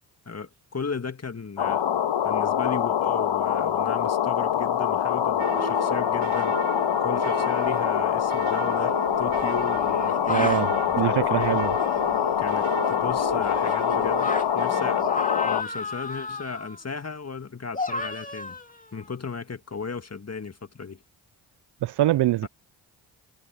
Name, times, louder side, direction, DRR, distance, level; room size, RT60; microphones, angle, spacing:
voice 1, 0.3-1.8 2.2-6.6 7.0-11.6 12.4-15.0 15.4-18.6 18.9-21.0 22.4-22.5, left 5 dB, 30° left, 2.1 m, -35 dB
sound 1, 1.6-15.6, left 9 dB, 60° left, 1.8 m, -24 dB
sound 2, 5.4-15.0, right 13 dB, 80° right, 4.0 m, -36 dB
sound 3, 8.7-10.7 11.8-14.5 15.0-16.8 17.7-19.0, left 2 dB, 15° left, 2.8 m, -34 dB
voice 2, 10.3-10.7 11.0-11.7 21.8-22.5, right 14 dB, 55° right, 0.6 m, -23 dB
hypercardioid pair, 45°, 48 cm